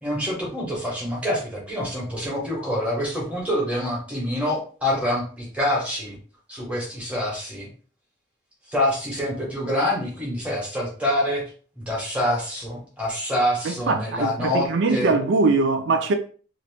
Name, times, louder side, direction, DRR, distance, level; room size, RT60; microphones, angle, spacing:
voice 1, 0.0-6.2 6.5-7.7 8.7-11.4 11.8-15.1, left 1 dB, 5° right, 1.1 m, -26 dB
voice 2, 13.6-16.1, right 3 dB, 70° right, 0.4 m, -22 dB
2.8 x 2.5 x 3.3 m
head